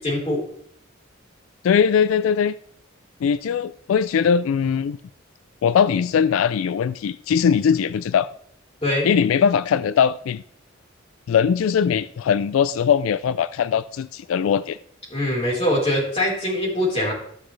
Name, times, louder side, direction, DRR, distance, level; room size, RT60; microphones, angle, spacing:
voice 1, 0.0-0.4 8.8-9.1 15.1-17.1, left 1 dB, 30° left, -4 dB, 4.0 m, -22 dB
voice 2, 1.6-2.6 3.2-5.0 5.6-8.3 9.0-10.4 11.3-14.8, left 7 dB, 90° left, 15 dB, 0.3 m, -20 dB
14.0 x 6.1 x 3.2 m, 0.65 s
head